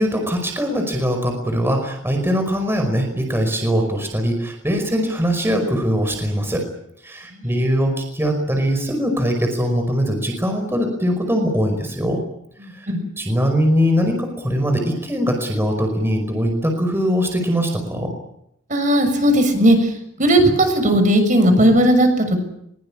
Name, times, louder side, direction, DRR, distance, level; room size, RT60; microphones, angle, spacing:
voice 1, 0.0-6.7 7.0-12.2 12.7-12.9 13.2-18.1, equal, 15° right, 4 dB, 5.2 m, -21 dB
voice 2, 18.7-19.9 20.2-22.4, right 1 dB, 40° right, 7 dB, 6.6 m, -16 dB
23.5 x 23.0 x 8.8 m, 0.74 s
head